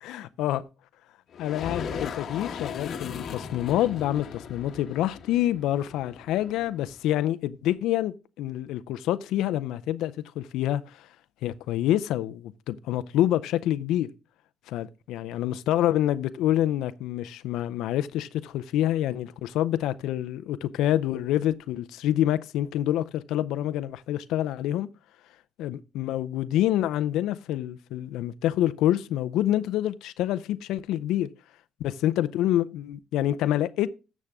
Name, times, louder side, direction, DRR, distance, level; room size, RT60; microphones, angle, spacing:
voice 1, 0.0-0.6 1.4-11.1 11.4-14.1 14.7-24.9 25.6-31.3 31.8-33.9, left 13 dB, 80° left, 0.5 m, -27 dB
sound 1, 1.3-7.0, left 6 dB, 45° left, 1.2 m, -37 dB
13.0 x 7.3 x 3.5 m
cardioid pair, 135°, 0 cm